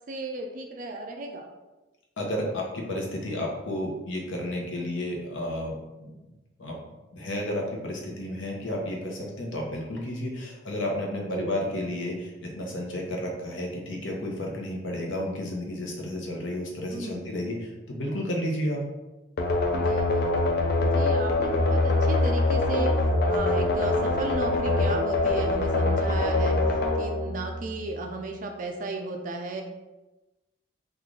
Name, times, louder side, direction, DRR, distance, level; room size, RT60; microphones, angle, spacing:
voice 1, 0.1-1.5 11.2-11.7 16.9-17.3 19.7-20.5 20.8-22.9 23.3-29.6, right 2 dB, 40° right, 3 dB, 0.3 m, -34 dB
voice 2, 2.2-6.1 6.6-6.8 7.1-18.8, left 1 dB, 80° left, -1 dB, 0.8 m, -32 dB
sound 1, 19.4-28.1, left 2 dB, 55° left, 0.4 m, -24 dB
3.1 x 2.4 x 3.7 m, 1.1 s
head